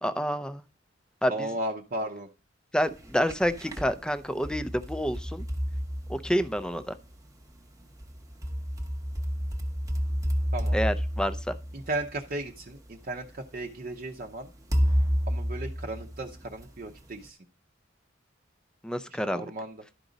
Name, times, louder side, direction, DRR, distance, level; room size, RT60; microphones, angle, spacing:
voice 1, 0.0-0.6 1.2-1.5 2.7-5.5 6.1-6.9 10.7-11.4 18.8-19.5, equal, 5° left, 12 dB, 0.5 m, -28 dB
voice 2, 1.3-2.3 10.5-10.8 11.7-14.5 15.3-17.4 19.3-19.8, right 2 dB, 45° right, 1 dB, 0.7 m, -35 dB
sound 1, 2.9-3.9 4.4-6.8 8.0-12.4 13.2-13.3 14.7-16.6, equal, 15° right, 0.9 m, -30 dB
12.0 x 5.1 x 3.9 m, 0.33 s
head